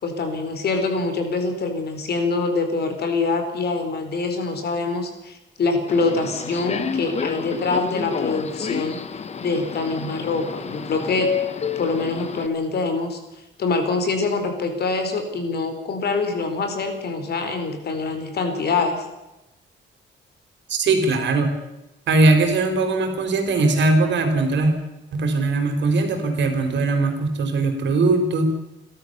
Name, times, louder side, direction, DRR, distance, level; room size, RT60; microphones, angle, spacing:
voice 1, 0.0-9.0 9.4-11.3 11.7-13.2 13.6-19.0, left 3 dB, 55° left, 6 dB, 4.5 m, -24 dB
Subway metro underground, 5.9-12.5, left 6 dB, 35° left, 1.2 m, -29 dB
voice 2, 20.7-21.5 22.1-24.7 25.1-28.4, right 3 dB, 65° right, 5 dB, 4.4 m, -20 dB
29.5 x 13.0 x 6.9 m, 0.95 s
cardioid pair, 135°, 20 cm